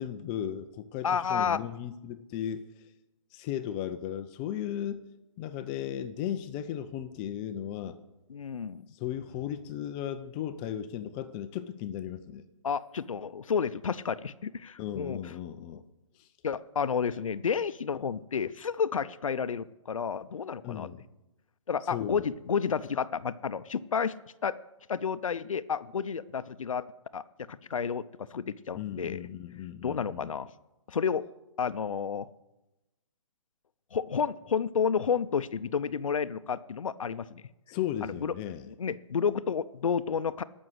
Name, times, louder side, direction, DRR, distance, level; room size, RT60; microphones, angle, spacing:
voice 1, 0.0-2.9 3.3-5.0 5.4-8.0 8.9-12.4 14.8-15.8 16.2-16.3 20.6-21.0 21.9-22.3 28.8-30.3 37.7-38.7, left 10 dB, 20° left, 10 dB, 0.4 m, -36 dB
voice 2, 1.0-1.6 8.3-8.8 12.6-15.3 15.7-15.8 16.4-20.9 21.7-24.1 24.4-24.6 24.9-26.9 27.1-29.3 29.8-30.5 30.9-31.3 31.6-32.3 33.9-37.4 38.0-38.3 38.7-40.4, left 6 dB, 80° left, 15 dB, 0.6 m, -31 dB
14.0 x 6.2 x 7.9 m, 0.97 s
hypercardioid pair, 150°, 17 cm